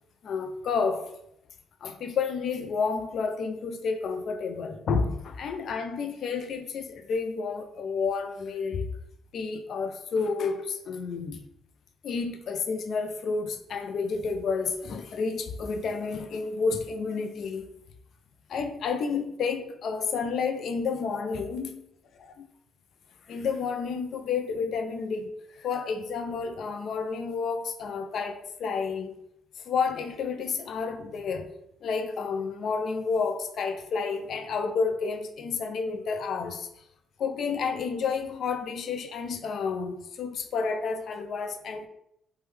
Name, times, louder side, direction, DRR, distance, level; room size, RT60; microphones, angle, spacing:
voice 1, 0.2-1.1 1.8-8.9 9.3-11.4 12.0-17.7 18.5-21.8 22.2-22.5 23.3-29.1 29.7-31.5 31.8-36.7 37.2-41.9, left 5 dB, 65° left, 0.4 m, -30 dB
3.2 x 2.2 x 3.2 m
cardioid pair, 90°, 0 cm